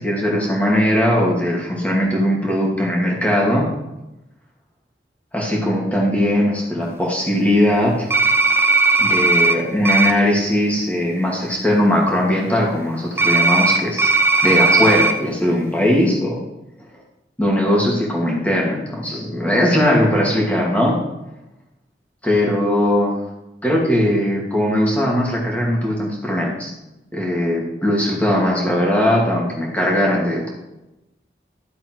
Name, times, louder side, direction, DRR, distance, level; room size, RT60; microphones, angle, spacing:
voice 1, 0.0-3.7 5.3-8.1 9.0-14.1 14.4-16.4 17.4-21.0 22.2-23.1 23.6-26.7 27.1-30.5, left 1 dB, 10° left, -3 dB, 2.8 m, -19 dB
sound 1, 8.1-9.5 9.8-10.1 13.2-15.1, right 3 dB, 15° right, 0.7 m, -16 dB
13.0 x 7.8 x 4.7 m, 0.95 s
head